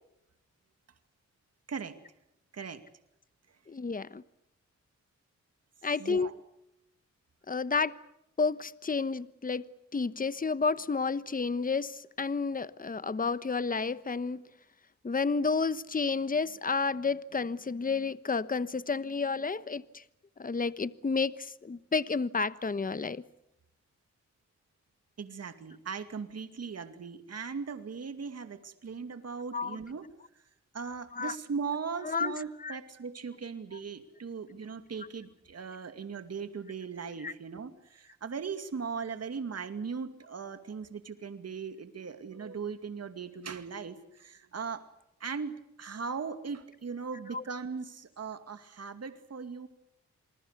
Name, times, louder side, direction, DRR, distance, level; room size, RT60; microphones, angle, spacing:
voice 1, 3.7-4.2 5.8-6.3 7.5-7.9 8.4-14.4 15.0-20.0 20.4-23.2 29.5-29.8 31.1-31.3 32.0-32.3 32.6-32.8 37.2-37.3 47.3-47.4, left 4 dB, 30° left, 1.1 m, -31 dB
voice 2, 6.0-6.3 25.2-30.1 30.7-44.8 45.2-49.7, right 5 dB, 60° right, 2.4 m, -39 dB
28.0 x 20.5 x 8.3 m
cardioid pair, 55°, 29 cm